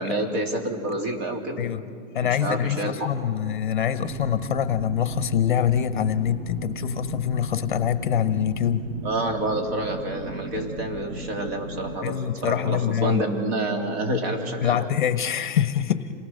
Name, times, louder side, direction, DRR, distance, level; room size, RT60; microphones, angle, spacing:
voice 1, 0.0-1.7 2.2-3.1 9.0-14.9, right 1 dB, 50° right, 3 dB, 3.6 m, -28 dB
voice 2, 2.1-8.8 12.0-13.2 14.6-16.1, left 9 dB, 40° left, 12 dB, 0.8 m, -24 dB
sound 1, 4.0-12.0, right 3 dB, 25° right, 0.5 m, -36 dB
27.5 x 19.0 x 6.5 m, 2.4 s
hypercardioid pair, 175°, 40 cm